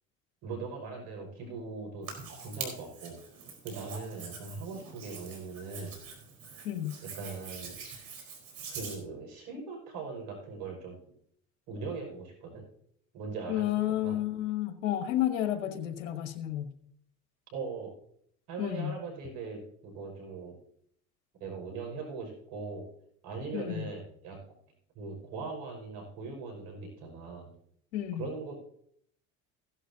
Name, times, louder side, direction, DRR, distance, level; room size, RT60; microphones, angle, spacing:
voice 1, 0.4-2.1 2.4-3.2 3.6-5.9 7.0-7.8 8.7-11.0 11.7-12.6 13.1-14.2 17.5-17.9 18.5-20.6 21.4-22.9 23.2-24.6 24.9-27.5 28.2-28.6, right 4 dB, 75° right, 2 dB, 5.7 m, -40 dB
Hands, 2.0-9.0, right 5 dB, 60° right, 4.4 m, -44 dB
voice 2, 6.6-7.0 13.5-16.7 18.6-19.0 23.5-23.9 27.9-28.3, left 12 dB, 90° left, 8 dB, 1.3 m, -31 dB
15.5 x 11.5 x 2.8 m, 0.66 s
supercardioid pair, 85°, 38 cm